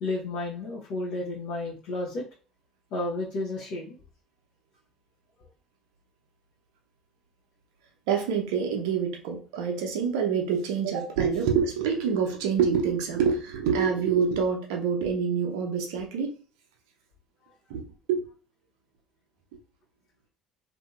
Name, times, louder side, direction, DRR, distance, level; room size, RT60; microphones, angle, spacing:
voice 1, 0.0-2.2 2.9-4.0, left 2 dB, 60° left, -5 dB, 0.7 m, -32 dB
voice 2, 8.1-16.3 17.7-17.8 18.1-18.2, right 6 dB, 65° right, 2 dB, 0.6 m, -26 dB
2.7 x 2.6 x 2.3 m, 0.37 s
figure-of-eight pair, 55°, 3 cm